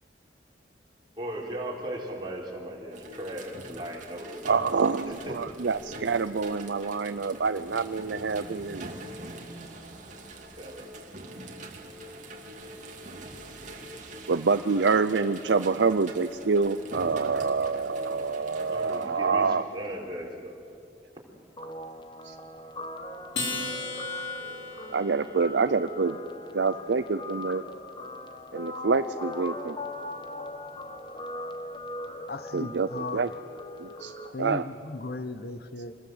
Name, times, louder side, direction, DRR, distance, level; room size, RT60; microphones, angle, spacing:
voice 1, 1.2-4.4 5.1-5.4 10.6-11.1 18.7-20.6, right 1 dB, 25° right, -3 dB, 4.3 m, -37 dB
sound 1, 2.9-19.1, right 1 dB, 45° right, 2.6 m, -43 dB
voice 2, 4.4-8.9 14.3-19.6 22.2-22.3 24.9-26.2 26.5-27.6 28.5-29.8 32.5-33.3 33.8-34.1 34.4-34.7, right 4 dB, 85° right, 11 dB, 0.6 m, -26 dB
Guitar, 21.6-34.3, left 2 dB, 25° left, 1.3 m, -39 dB
Acoustic guitar, 23.3-26.0, left 2 dB, 75° left, 4.1 m, -36 dB
voice 3, 32.3-33.2 34.2-35.9, left 3 dB, 60° left, 12 dB, 1.0 m, -36 dB
26.5 x 20.5 x 8.0 m, 2.5 s
head